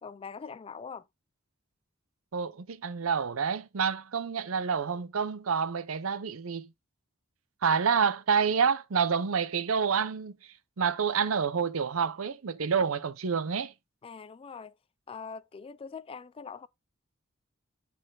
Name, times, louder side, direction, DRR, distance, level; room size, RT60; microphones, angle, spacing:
voice 1, 0.0-1.1 14.0-14.7 15.1-16.7, left 5 dB, 25° left, 0.3 m, -42 dB
voice 2, 2.3-6.7 7.6-13.7, right 6 dB, 75° right, 0.6 m, -28 dB
8.8 x 4.2 x 3.7 m
head